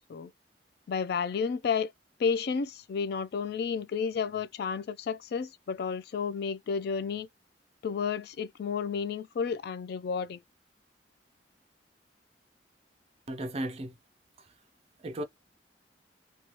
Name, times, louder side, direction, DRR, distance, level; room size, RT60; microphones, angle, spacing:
voice 1, 0.9-1.9 2.2-7.3 7.8-10.4, left 6 dB, 60° left, 0.3 m, -31 dB
voice 2, 13.3-14.0 15.0-15.2, right 1 dB, 35° right, 0.5 m, -35 dB
2.7 x 2.2 x 2.9 m
head